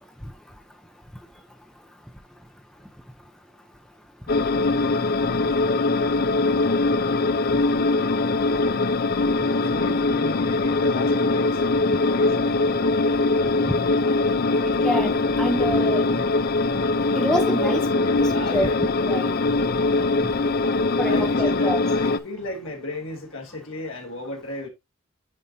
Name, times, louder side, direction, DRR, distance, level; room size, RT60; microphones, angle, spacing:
sound 1, 4.3-22.2, left 3 dB, 45° left, 0.5 m, -22 dB
voice 1, 9.7-11.6 12.0-13.0 17.6-17.7 18.3-18.8 21.0-24.7, left 2 dB, 65° left, 2.7 m, -34 dB
voice 2, 14.7-16.1 17.1-17.8 18.2-18.8 19.0-19.3 21.0-21.8, equal, 5° left, 0.8 m, -26 dB
9.5 x 5.0 x 2.8 m
head